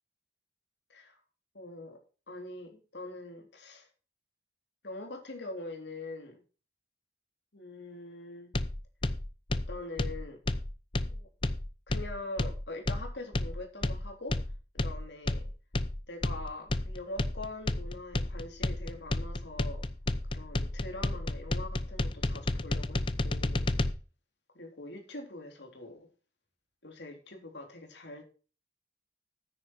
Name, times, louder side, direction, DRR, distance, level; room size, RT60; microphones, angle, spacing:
voice 1, 1.5-2.0 2.3-3.9 4.8-6.4 7.5-8.5 9.7-10.4 11.1-11.3 11.9-14.4 14.8-15.5 16.1-19.9 20.3-23.7 24.6-26.1 26.8-28.2, left 2 dB, 70° left, 4 dB, 3.5 m, -43 dB
sound 1, 8.5-23.9, left 2 dB, 30° left, 0.7 m, -31 dB
10.0 x 9.5 x 4.3 m, 0.35 s
head